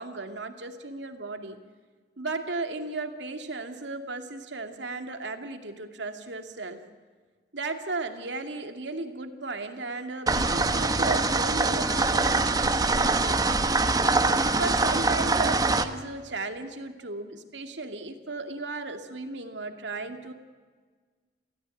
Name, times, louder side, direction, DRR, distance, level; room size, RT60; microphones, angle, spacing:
voice 1, 0.0-1.6 2.2-6.8 7.5-13.7 14.4-20.3, right 3 dB, 80° right, 6 dB, 2.4 m, -35 dB
sound 1, 10.3-15.8, right 3 dB, 20° right, 1.1 m, -24 dB
27.0 x 17.5 x 9.1 m, 1.5 s
head